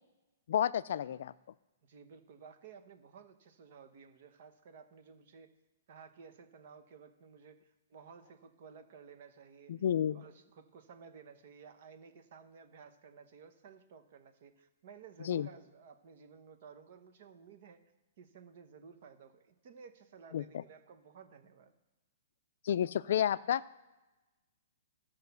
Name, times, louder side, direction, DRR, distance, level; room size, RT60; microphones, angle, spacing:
voice 1, 0.5-1.3 9.7-10.2 15.3-15.5 20.3-20.4 22.6-23.8, left 10 dB, 60° left, 16 dB, 0.3 m, -31 dB
voice 2, 1.8-5.5 5.9-9.8 10.1-17.8 18.2-21.7, right 6 dB, 50° right, 8 dB, 1.1 m, -55 dB
13.0 x 5.6 x 6.9 m, 1.1 s
hypercardioid pair, 165°, 0 cm